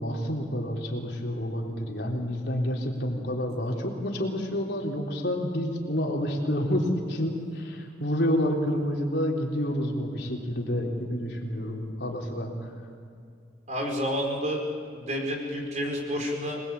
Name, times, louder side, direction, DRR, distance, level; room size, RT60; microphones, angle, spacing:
voice 1, 0.0-12.7, equal, 65° left, 0 dB, 3.8 m, -29 dB
voice 2, 13.7-14.6 14.9-16.6, equal, 40° right, 1 dB, 5.2 m, -29 dB
26.0 x 20.5 x 8.4 m, 2.4 s
head